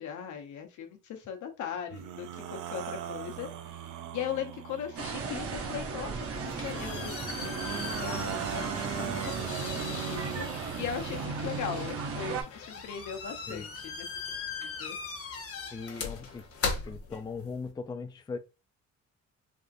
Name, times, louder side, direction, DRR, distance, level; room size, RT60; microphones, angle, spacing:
voice 1, 0.0-3.5 4.1-7.2 7.4-7.5 7.9-9.1 9.4-10.5 10.8-14.1 14.6-15.0, left 8 dB, 75° left, 0.8 m, -39 dB
sound 1, 1.9-5.3 7.3-11.3, right 10 dB, 85° right, 0.5 m, -39 dB
sound 2, 5.0-12.4, right 4 dB, 50° right, 0.9 m, -36 dB
sound 3, 6.2-17.7, left 5 dB, 50° left, 1.0 m, -39 dB
voice 2, 15.7-16.4 16.9-18.4, left 4 dB, 15° left, 0.3 m, -39 dB
3.5 x 2.5 x 2.5 m
cardioid pair, 90°, 30 cm